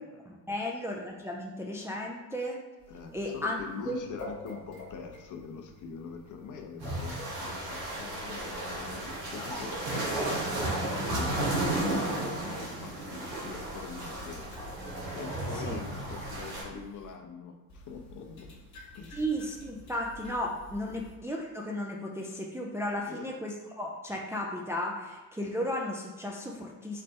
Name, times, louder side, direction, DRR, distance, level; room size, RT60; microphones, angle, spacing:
voice 1, 0.3-2.6 3.1-3.6 3.8-4.0 15.6-15.8 19.1-27.0, equal, 5° right, -1 dB, 0.4 m, -34 dB
sound 1, 2.8-17.1 17.7-21.2, left 1 dB, 85° left, 1.0 m, -50 dB
voice 2, 2.9-9.8 10.9-14.4 15.1-18.6 18.9-19.2 20.9-21.0 23.0-23.3, left 6 dB, 40° left, 3 dB, 0.7 m, -43 dB
sound 2, 6.8-16.6, right 1 dB, 75° right, 1.3 m, -33 dB
4.3 x 2.5 x 3.4 m, 1.2 s
figure-of-eight pair, 50°, 48 cm